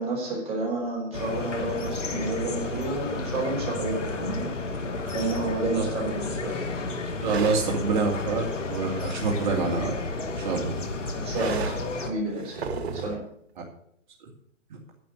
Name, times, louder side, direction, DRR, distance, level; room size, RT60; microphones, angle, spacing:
voice 1, 0.0-4.5 5.1-6.5 11.2-12.6 12.9-13.2, right 2 dB, 15° right, -2 dB, 5.0 m, -30 dB
sound 1, 1.1-12.1, left 3 dB, 75° left, 2.5 m, -32 dB
voice 2, 7.2-9.9 10.4-10.7 14.7-14.8, right 4 dB, 40° right, -1 dB, 2.6 m, -26 dB
sound 2, 7.2-7.7 8.9-10.0 11.3-11.9 12.4-13.2, right 5 dB, 55° right, 1.7 m, -34 dB
11.0 x 7.7 x 8.0 m, 0.70 s
hypercardioid pair, 155°, 37 cm